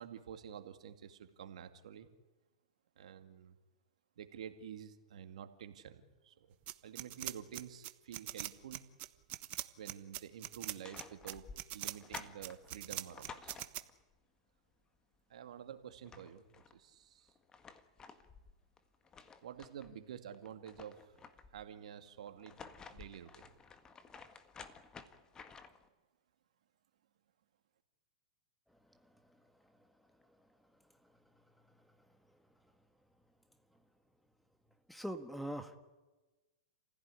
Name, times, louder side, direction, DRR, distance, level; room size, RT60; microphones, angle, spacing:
voice 1, 0.0-2.1 3.0-3.6 4.2-6.5 6.8-8.8 9.8-11.5 11.7-13.6 15.3-17.3 19.4-21.1 21.5-23.6, right 9 dB, 75° right, 8 dB, 2.2 m, -50 dB
sound 1, 6.7-13.8, right 17 dB, 40° right, 1.3 m, -42 dB
sound 2, 10.6-14.1 15.6-15.7 15.9-16.8 17.3-19.9 20.3-21.7 22.3-25.9, left 5 dB, 20° left, 1.7 m, -53 dB
voice 2, 34.9-35.8, equal, ahead, 9 dB, 1.6 m, -41 dB
28.5 x 16.0 x 9.9 m, 1.2 s
hypercardioid pair, 120°, 4 cm